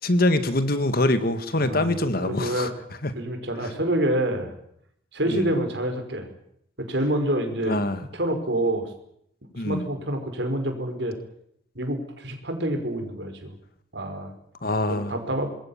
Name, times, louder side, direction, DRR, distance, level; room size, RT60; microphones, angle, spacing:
voice 1, 0.0-2.7 3.0-3.1 3.6-3.7 5.3-5.5 7.7-8.0 9.6-9.9 14.6-15.1, left 1 dB, 50° left, 11 dB, 1.9 m, -24 dB
voice 2, 1.6-2.7 3.1-4.5 5.1-6.3 6.8-7.8 8.1-8.9 9.6-11.2 11.8-13.5 13.9-14.3 14.9-15.5, right 1 dB, 60° right, 6 dB, 5.4 m, -27 dB
26.5 x 21.0 x 7.4 m, 0.72 s
head